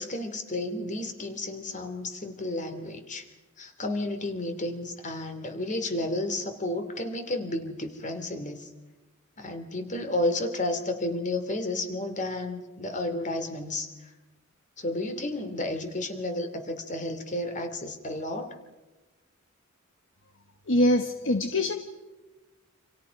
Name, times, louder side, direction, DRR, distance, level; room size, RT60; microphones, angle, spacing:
voice 1, 0.0-3.2 3.6-8.7 9.4-13.9 14.8-18.5, left 1 dB, 35° left, 7 dB, 2.8 m, -32 dB
voice 2, 20.7-21.7, left 1 dB, 65° left, 6 dB, 1.3 m, -23 dB
29.5 x 27.0 x 5.3 m, 1.2 s
head